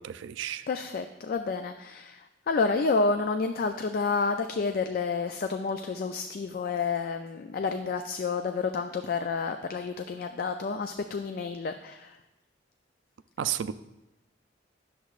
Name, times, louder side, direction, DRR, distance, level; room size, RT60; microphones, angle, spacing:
voice 1, 0.0-0.7 13.4-13.7, right 10 dB, 80° right, 0.3 m, -32 dB
voice 2, 0.7-12.2, left 4 dB, 50° left, 0.3 m, -30 dB
10.0 x 7.0 x 2.4 m
head